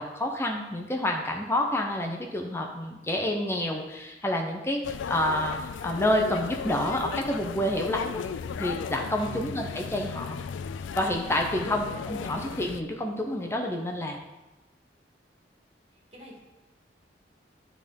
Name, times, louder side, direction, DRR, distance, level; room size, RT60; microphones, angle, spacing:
voice 1, 0.0-8.3 8.6-10.4 11.0-14.2, left 1 dB, 15° left, 1 dB, 0.6 m, -28 dB
sound 1, 4.8-12.8, left 6 dB, 85° left, 0.3 m, -36 dB
voice 2, 16.1-16.4, equal, 35° right, -4 dB, 2.3 m, -49 dB
9.9 x 3.6 x 5.2 m, 1.1 s
head